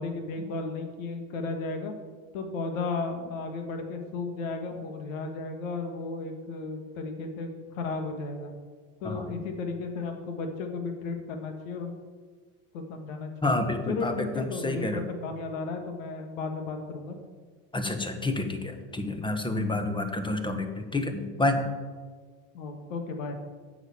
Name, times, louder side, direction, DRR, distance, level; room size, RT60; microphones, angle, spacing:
voice 1, 0.0-1.9 2.3-8.5 9.0-12.0 12.7-13.5 13.9-17.2 22.5-23.4, left 3 dB, 80° left, 5 dB, 1.7 m, -34 dB
voice 2, 9.0-9.4 13.4-15.1 17.7-21.7, left 2 dB, 10° left, 6 dB, 1.3 m, -29 dB
8.1 x 7.1 x 7.2 m, 1.5 s
supercardioid pair, 95°, 39 cm